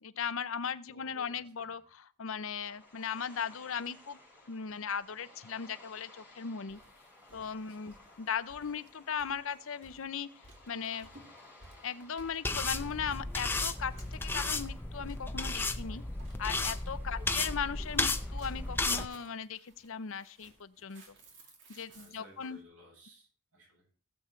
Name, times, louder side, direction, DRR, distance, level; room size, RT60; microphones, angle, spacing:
voice 1, 0.0-4.2 4.5-6.8 7.3-10.3 10.7-11.1 11.8-16.0 16.4-21.0 21.7-22.6, left 7 dB, 60° left, 14 dB, 0.6 m, -38 dB
voice 2, 0.9-1.8 7.6-8.2 17.1-17.5 21.9-23.9, left 1 dB, 80° right, -1 dB, 7.5 m, -58 dB
sound 1, 2.6-19.3, left 2 dB, 10° right, 6.9 m, -58 dB
sound 2, 6.7-22.5, right 1 dB, 55° right, 2.8 m, -58 dB
sound 3, 12.4-19.0, left 3 dB, 10° left, 0.5 m, -34 dB
17.5 x 8.1 x 3.2 m, 0.39 s
head